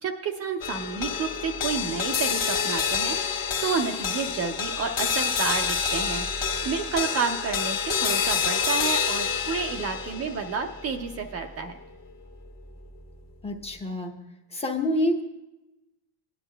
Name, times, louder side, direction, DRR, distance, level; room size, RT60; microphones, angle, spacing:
voice 1, 0.0-11.7, right 5 dB, 35° right, 4 dB, 0.5 m, -30 dB
sound 1, 0.6-13.1, left 6 dB, 50° left, 1.3 m, -28 dB
voice 2, 13.4-14.2 14.5-15.2, left 1 dB, 15° left, 3 dB, 0.7 m, -27 dB
17.0 x 10.0 x 2.2 m, 0.96 s
cardioid pair, 140°, 44 cm